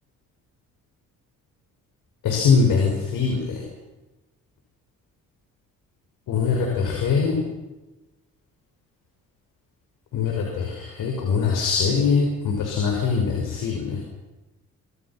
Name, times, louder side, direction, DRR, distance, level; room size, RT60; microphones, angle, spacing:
voice 1, 2.2-3.5 6.3-7.4 10.1-14.0, left 5 dB, 80° left, 0 dB, 6.1 m, -22 dB
27.0 x 26.0 x 6.1 m, 1.1 s
cardioid pair, 80°, 32 cm